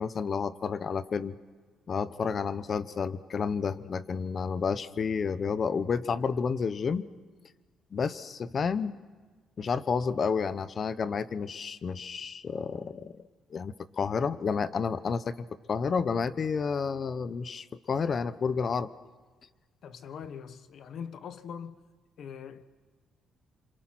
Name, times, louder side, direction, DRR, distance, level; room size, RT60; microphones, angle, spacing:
voice 1, 0.0-1.3 1.9-7.1 7.9-9.0 9.6-13.1 13.5-15.3 15.7-18.9, left 5 dB, 45° left, 1.0 m, -30 dB
voice 2, 19.8-21.8 22.2-22.6, left 7 dB, 65° left, 1.3 m, -42 dB
28.0 x 26.5 x 6.1 m
cardioid pair, 90°, 0 cm